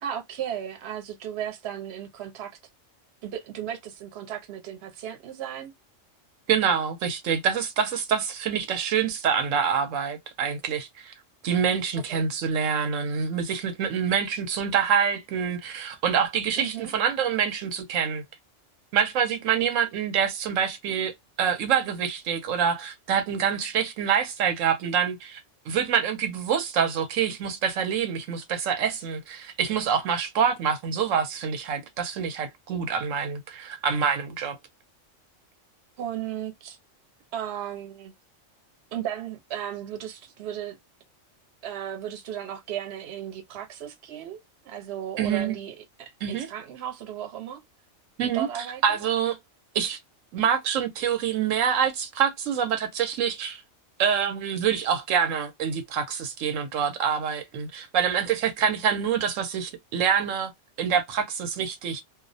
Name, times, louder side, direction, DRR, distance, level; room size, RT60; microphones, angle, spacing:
voice 1, 0.0-2.5 3.2-5.7 12.1-12.3 16.6-16.9 36.0-36.8 37.3-38.1 38.9-40.8 41.6-47.6 48.2-49.0, right 10 dB, 60° right, 0.9 m, -35 dB
voice 2, 6.5-11.1 11.4-18.2 18.9-25.4 25.7-34.6 45.2-45.6 46.2-46.5 48.2-48.5 48.8-49.4 49.7-50.0 50.3-53.6 54.0-60.5 60.8-62.0, right 7 dB, 85° right, 1.0 m, -26 dB
2.4 x 2.0 x 2.6 m
omnidirectional pair, 1.3 m